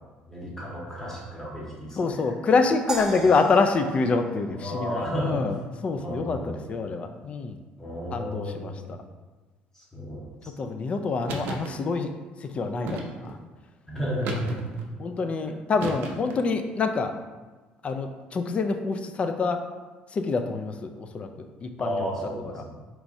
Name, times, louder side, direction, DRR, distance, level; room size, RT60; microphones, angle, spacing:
voice 1, 0.2-2.4 3.1-3.2 4.5-5.4 5.9-6.6 7.8-8.9 9.7-10.7 13.9-14.6 21.8-22.8, equal, 15° left, -6 dB, 1.4 m, -33 dB
voice 2, 2.0-5.5 5.8-7.6 8.1-9.0 10.6-12.1 12.4-13.4 15.0-17.1 17.8-19.6 20.1-22.1, left 4 dB, 35° left, 7 dB, 0.4 m, -26 dB
sound 1, 2.9-5.3, right 2 dB, 15° right, 0.5 m, -37 dB
sound 2, 11.3-11.7 12.9-13.4 14.2-14.9 15.8-16.4, right 2 dB, 75° right, 0.6 m, -34 dB
4.6 x 3.0 x 2.7 m, 1.3 s
cardioid pair, 105°, 3 cm